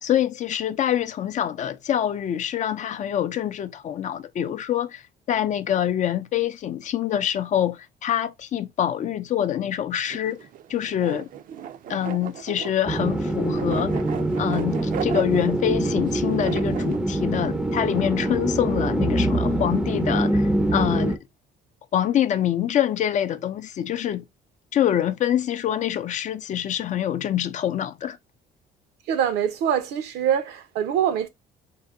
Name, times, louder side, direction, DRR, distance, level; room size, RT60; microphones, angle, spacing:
voice 1, 0.0-5.0 5.3-10.4 10.7-11.3 11.9-14.0 14.4-20.4 20.7-21.2 21.9-24.2 24.7-28.2, left 10 dB, 45° left, 0.4 m, -25 dB
sound 1, 10.1-17.0, right 9 dB, 55° right, 0.5 m, -36 dB
sound 2, 12.9-21.2, right 1 dB, 5° right, 0.5 m, -24 dB
voice 2, 29.1-31.3, right 9 dB, 80° right, 0.8 m, -24 dB
3.7 x 2.2 x 3.6 m
cardioid pair, 110°, 17 cm